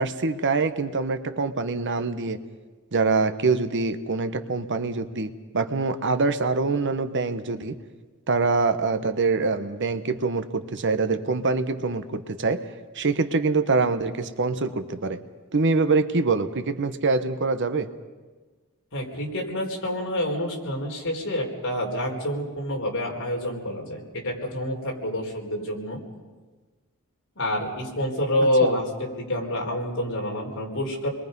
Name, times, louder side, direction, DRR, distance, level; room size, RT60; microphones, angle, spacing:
voice 1, 0.0-2.4 2.9-7.8 8.3-12.6 12.9-15.2 15.5-17.9 28.6-28.8, right 3 dB, 55° right, 10 dB, 1.0 m, -24 dB
voice 2, 18.9-26.0 27.4-31.1, left 1 dB, 60° left, 0 dB, 4.4 m, -27 dB
29.5 x 22.0 x 5.4 m, 1.3 s
head